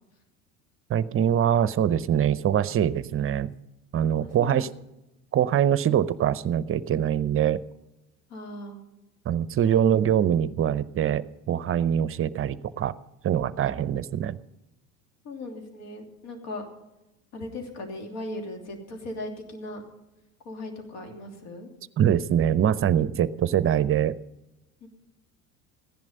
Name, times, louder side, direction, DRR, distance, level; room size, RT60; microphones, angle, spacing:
voice 1, 0.9-3.5 3.9-4.7 5.3-7.6 9.3-12.9 13.2-14.4 22.0-24.2, right 9 dB, 30° right, 17 dB, 0.6 m, -23 dB
voice 2, 4.2-4.7 8.3-8.8 9.6-9.8 15.2-16.6 17.3-19.8 20.4-21.7 24.8-24.9, left 2 dB, 70° left, 3 dB, 3.1 m, -38 dB
15.5 x 10.5 x 5.3 m, 0.94 s
hypercardioid pair, 70°, 43 cm